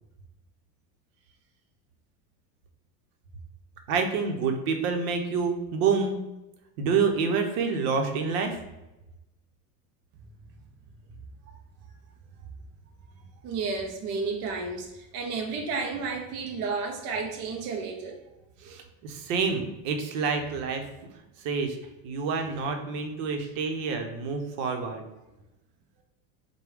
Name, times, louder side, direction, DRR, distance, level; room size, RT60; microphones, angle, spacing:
voice 1, 3.9-6.2 6.8-8.6 18.6-20.9 21.4-21.8 22.0-25.0, right 5 dB, 65° right, 4 dB, 0.8 m, -27 dB
voice 2, 13.4-18.2 18.6-18.7 23.4-23.5, right 4 dB, 35° right, 1 dB, 0.5 m, -32 dB
4.7 x 2.2 x 3.4 m, 0.98 s
supercardioid pair, 140°, 45 cm